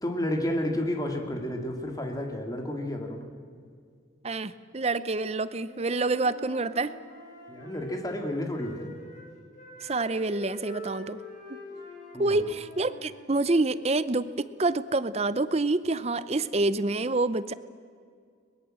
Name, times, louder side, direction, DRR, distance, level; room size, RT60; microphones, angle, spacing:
voice 1, 0.0-3.3 7.5-8.9 12.1-12.4, left 1 dB, 20° left, 3 dB, 2.4 m, -31 dB
voice 2, 4.2-6.9 9.8-11.2 12.2-17.5, right 2 dB, 35° right, 15 dB, 0.7 m, -27 dB
Wind instrument woodwind instrument, 5.5-9.3 9.5-13.9, equal, 45° left, 7.9 m, -45 dB
22.5 x 21.0 x 7.7 m, 2.2 s
head